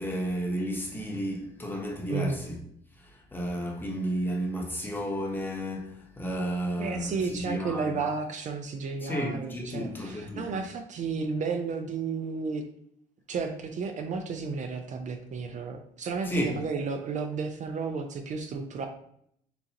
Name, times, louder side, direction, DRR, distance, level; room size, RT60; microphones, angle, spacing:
voice 1, 0.0-2.6 3.0-8.0 9.0-10.5 16.2-16.6, equal, 10° left, 1.0 m, -32 dB
voice 2, 2.1-2.4 6.8-12.6 13.3-18.9, right 4 dB, 45° right, 0.6 m, -32 dB
6.8 x 2.4 x 2.9 m
cardioid pair, 110°, 17 cm